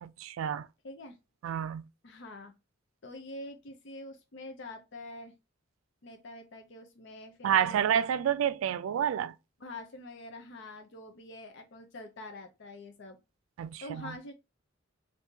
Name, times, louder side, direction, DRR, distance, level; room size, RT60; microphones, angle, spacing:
voice 1, 0.0-0.7 1.4-1.8 7.4-9.3 13.6-14.1, right 9 dB, 80° right, 0.3 m, -29 dB
voice 2, 0.8-1.2 2.0-2.5 3.0-5.4 6.0-7.9 9.6-13.2 13.8-14.3, left 1 dB, 60° left, 0.6 m, -45 dB
2.7 x 2.6 x 3.6 m
head